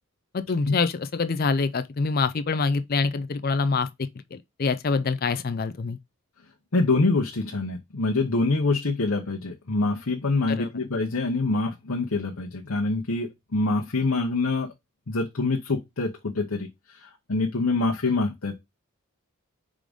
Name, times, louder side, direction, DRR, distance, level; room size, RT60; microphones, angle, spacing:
voice 1, 0.3-6.0 10.5-10.7, left 4 dB, 40° left, 0.4 m, -26 dB
voice 2, 6.7-14.7 15.1-16.7 17.3-18.6, left 3 dB, 70° left, 0.9 m, -25 dB
4.9 x 3.8 x 5.1 m
head